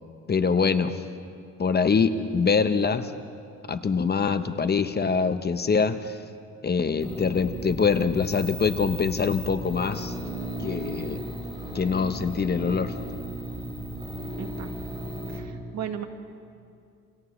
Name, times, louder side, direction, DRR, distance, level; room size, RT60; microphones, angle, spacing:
voice 1, 0.3-1.0 1.6-3.1 3.7-6.2 6.6-10.1 10.6-11.4 11.7-12.9, left 5 dB, 35° left, 10 dB, 0.9 m, -24 dB
sound 1, 7.0-15.4, right 1 dB, 15° right, 7.4 m, -35 dB
voice 2, 14.4-14.7 15.3-16.1, right 9 dB, 60° right, 5 dB, 1.8 m, -35 dB
29.0 x 27.5 x 3.2 m, 2.4 s
cardioid pair, 90°, 30 cm